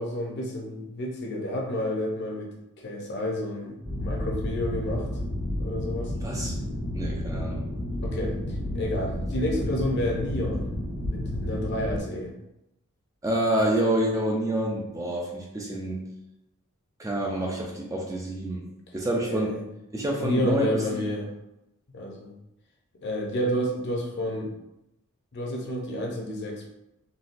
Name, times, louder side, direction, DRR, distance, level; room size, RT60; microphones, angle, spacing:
voice 1, 0.0-2.5 2.8-5.1 5.6-6.1 8.0-10.7 11.1-12.3 19.2-19.6 20.2-21.3 21.9-22.3 23.0-24.5 25.3-26.6, left 1 dB, 50° left, 0 dB, 0.6 m, -30 dB
sound 1, 3.8-12.0, left 1 dB, 85° right, 1.1 m, -31 dB
voice 2, 6.2-6.6 6.9-7.6 13.2-16.0 17.0-18.6 18.9-19.6 19.9-21.1, right 1 dB, 15° right, -2 dB, 0.4 m, -27 dB
3.9 x 2.2 x 2.5 m, 0.87 s
head